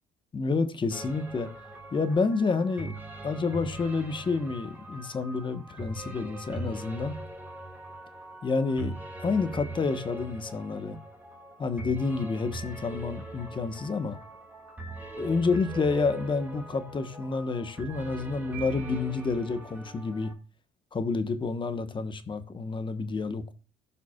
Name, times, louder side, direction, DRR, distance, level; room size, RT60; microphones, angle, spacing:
voice 1, 0.3-1.5 1.9-2.9 3.2-7.2 8.4-8.9 9.2-11.0 11.6-14.2 15.2-20.3 20.9-23.5, left 4 dB, 30° left, 1.1 m, -29 dB
sound 1, 0.9-20.3, right 2 dB, 10° right, 2.5 m, -41 dB
17.0 x 5.8 x 2.3 m
cardioid pair, 110°, 17 cm